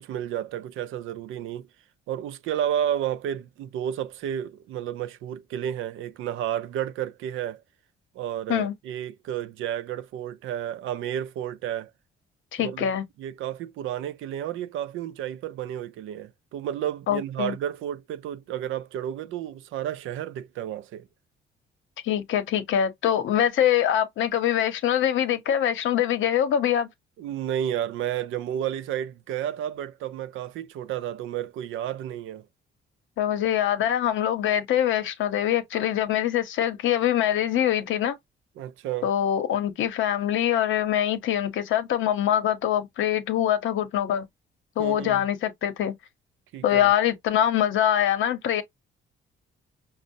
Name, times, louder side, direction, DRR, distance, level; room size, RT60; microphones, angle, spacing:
voice 1, 0.0-1.7 2.1-7.6 8.1-11.9 12.6-12.9 13.2-21.1 27.2-32.5 38.6-39.1 44.8-45.3 46.5-46.9, right 10 dB, 85° right, 0.5 m, -31 dB
voice 2, 12.5-13.0 17.1-17.5 22.0-26.9 33.2-38.2 39.0-44.3 44.8-46.0 46.6-48.6, left 10 dB, 80° left, 0.8 m, -24 dB
5.2 x 2.0 x 2.6 m
cardioid pair, 90°, 20 cm